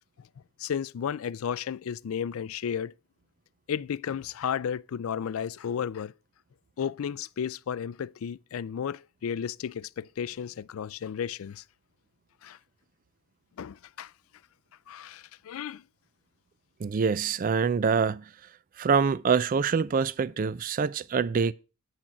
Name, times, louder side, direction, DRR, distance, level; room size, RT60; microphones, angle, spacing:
voice 1, 0.6-2.9 3.7-6.1 6.8-11.6 12.4-12.6 13.6-14.1 14.9-15.8, left 8 dB, 85° left, 0.4 m, -33 dB
voice 2, 16.8-18.2 18.8-21.5, right 5 dB, 40° right, 0.4 m, -25 dB
9.0 x 6.3 x 5.8 m
head